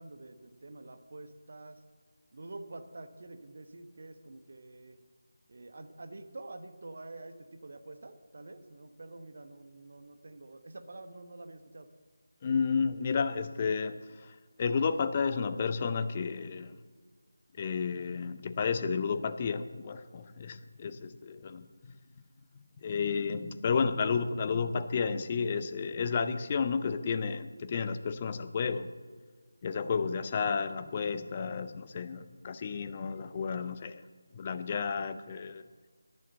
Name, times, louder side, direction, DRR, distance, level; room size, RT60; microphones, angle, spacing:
voice 1, 0.0-1.8 2.3-5.0 5.5-11.9, right 2 dB, 45° right, 8 dB, 1.2 m, -47 dB
voice 2, 12.4-16.8 17.6-21.7 22.8-28.9 29.6-34.0 34.3-35.6, left 5 dB, 25° left, 11 dB, 0.6 m, -32 dB
11.0 x 10.5 x 7.7 m, 1.5 s
figure-of-eight pair, 160°, 0 cm